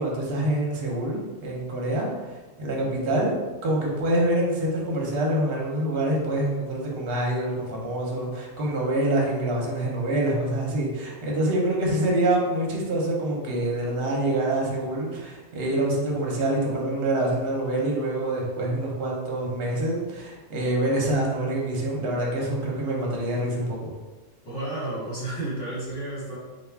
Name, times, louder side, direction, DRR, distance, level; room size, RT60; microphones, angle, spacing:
voice 1, 0.0-3.3 3.6-23.9, right 1 dB, 60° right, -2 dB, 0.8 m, -26 dB
voice 2, 24.4-26.4, right 2 dB, 55° left, -8 dB, 1.4 m, -31 dB
2.3 x 2.3 x 3.3 m, 1.2 s
omnidirectional pair, 1.2 m